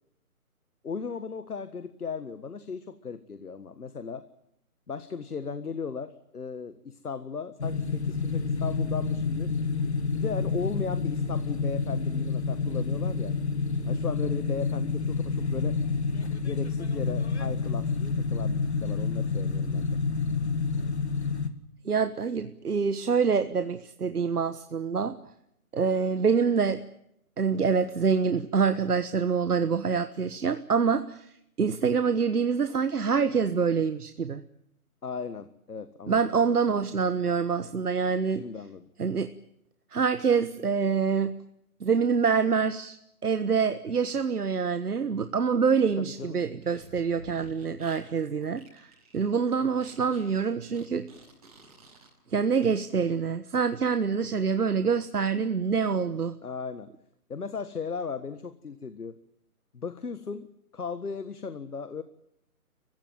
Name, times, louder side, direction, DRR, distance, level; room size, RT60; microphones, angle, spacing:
voice 1, 0.8-4.2 4.9-9.5 10.1-13.3 13.9-15.8 16.4-17.9 18.2-20.0 35.0-36.3 38.4-38.8 46.0-46.4 56.4-56.9 57.3-59.2 59.7-60.5 60.7-62.0, left 5 dB, 75° left, 12 dB, 1.7 m, -36 dB
sound 1, 7.6-21.5, left 4 dB, 45° left, 1.9 m, -28 dB
voice 2, 21.8-25.2 25.7-26.8 27.4-31.3 31.6-34.4 36.1-38.4 39.0-39.3 39.9-41.3 41.8-43.0 43.2-51.1 52.3-56.4, right 6 dB, 80° right, 11 dB, 1.4 m, -26 dB
Fart, 46.6-52.1, right 2 dB, 25° right, 6.9 m, -51 dB
29.5 x 16.0 x 9.3 m, 0.77 s
hypercardioid pair, 180°, 45 cm